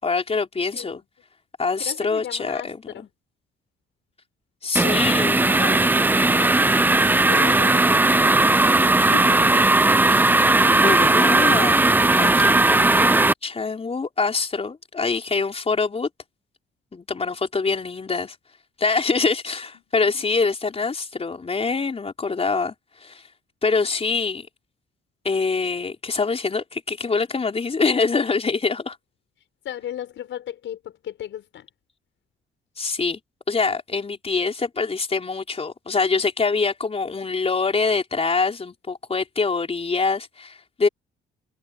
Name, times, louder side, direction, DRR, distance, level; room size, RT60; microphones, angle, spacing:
voice 1, 0.0-1.0 1.6-3.1 4.6-5.4 10.1-10.3 10.7-11.8 12.2-16.1 16.9-18.3 18.8-22.7 23.0-23.2 23.6-24.5 25.2-29.0 32.8-33.2 33.5-40.9, left 4 dB, 30° left, 4.5 m, -24 dB
voice 2, 0.7-1.0 1.8-3.1 4.8-9.7 19.1-19.3 20.1-20.2 29.6-31.7, left 11 dB, 75° left, 5.9 m, -36 dB
sound 1, 4.8-13.3, right 2 dB, 10° right, 0.5 m, -17 dB
cardioid pair, 90°, 20 cm